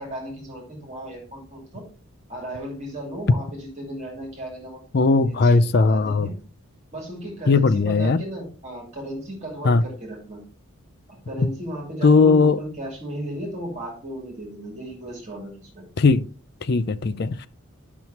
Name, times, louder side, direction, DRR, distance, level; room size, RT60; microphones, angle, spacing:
voice 1, 0.0-1.9 2.3-4.8 5.1-6.3 6.9-10.4 11.1-15.8, right 1 dB, 30° right, 2.7 m, -35 dB
voice 2, 4.9-6.3 7.5-8.2 9.6-9.9 11.4-11.5 12.0-12.6 16.0-16.3 16.6-17.5, left 4 dB, 45° left, 0.4 m, -18 dB
10.5 x 6.1 x 2.8 m
head